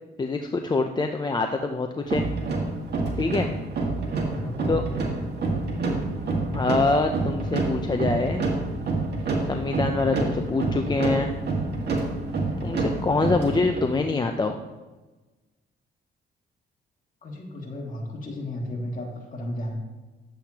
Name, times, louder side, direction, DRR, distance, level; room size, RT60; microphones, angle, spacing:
voice 1, 0.2-2.3 3.2-3.5 4.7-4.8 6.5-8.5 9.5-11.3 12.6-14.6, left 3 dB, 20° left, 5 dB, 0.5 m, -25 dB
sound 1, 2.1-13.9, right 3 dB, 55° right, 1.9 m, -27 dB
voice 2, 4.2-5.0 17.2-19.7, left 1 dB, 40° left, -1 dB, 2.2 m, -34 dB
10.0 x 7.7 x 2.9 m, 1.2 s
cardioid pair, 90°, 20 cm